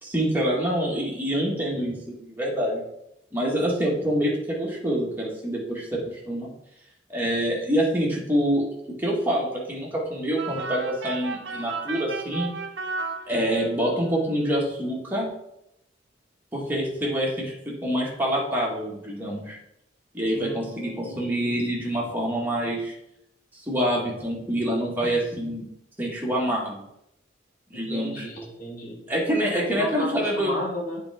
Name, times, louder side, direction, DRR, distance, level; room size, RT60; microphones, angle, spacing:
voice 1, 0.0-2.8 3.3-6.5 7.1-8.7 9.0-12.5 13.3-15.3 16.5-19.6 20.1-22.9 23.6-25.7 26.0-26.8 27.7-28.3 29.1-30.6, equal, 10° right, -4 dB, 1.9 m, -26 dB
sound 1, 10.4-13.9, right 4 dB, 65° right, 0.7 m, -33 dB
voice 2, 20.3-21.5 27.7-29.0 29.4-31.0, left 1 dB, 50° left, -1 dB, 1.8 m, -34 dB
8.6 x 4.5 x 3.7 m, 0.79 s
head